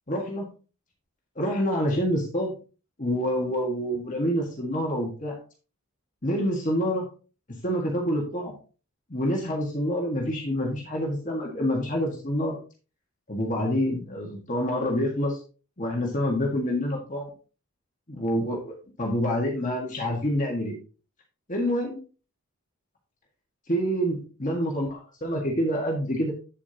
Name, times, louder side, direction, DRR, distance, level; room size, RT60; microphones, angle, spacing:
voice 1, 0.1-0.5 1.4-2.5 3.0-5.4 6.2-7.1 7.6-8.5 9.1-12.6 13.3-15.4 15.8-17.3 18.1-20.8 21.5-22.0 23.7-26.3, equal, 35° left, -1 dB, 1.7 m, -27 dB
8.6 x 8.4 x 2.9 m, 0.35 s
head